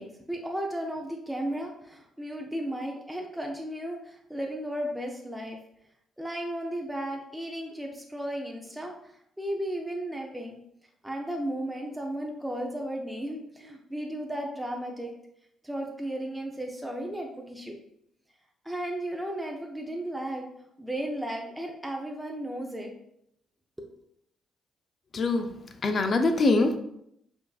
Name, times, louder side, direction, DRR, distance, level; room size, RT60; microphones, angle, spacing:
voice 1, 0.0-5.6 6.2-9.1 9.4-10.6 11.0-15.1 15.6-17.8 18.6-20.5 20.8-22.9, right 1 dB, 5° right, 0 dB, 0.5 m, -34 dB
voice 2, 25.1-25.5 25.8-26.8, left 3 dB, 45° left, 7 dB, 0.5 m, -23 dB
5.3 x 2.6 x 2.3 m, 0.75 s
cardioid pair, 90°, 0 cm